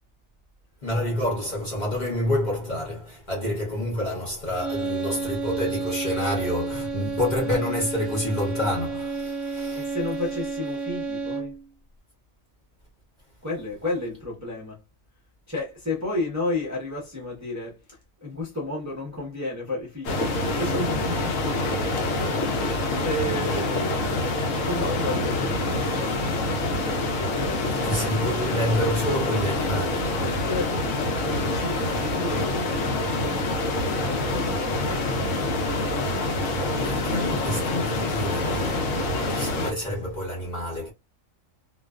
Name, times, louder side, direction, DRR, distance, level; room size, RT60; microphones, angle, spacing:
voice 1, 0.8-9.9 27.7-30.3 36.5-38.8 39.3-40.9, left 1 dB, 40° left, 0.8 m, -28 dB
sound 1, 4.5-11.7, right 4 dB, 75° right, 0.9 m, -31 dB
voice 2, 9.7-11.5 13.4-14.8 15.5-21.9 23.0-24.0 24.5-26.3 27.1-28.3 30.3-31.0 31.2-33.3 33.9-34.8, left 2 dB, 15° right, 0.6 m, -32 dB
sound 2, 20.0-39.7, left 2 dB, 75° left, 1.0 m, -26 dB
2.4 x 2.3 x 2.3 m
omnidirectional pair, 1.4 m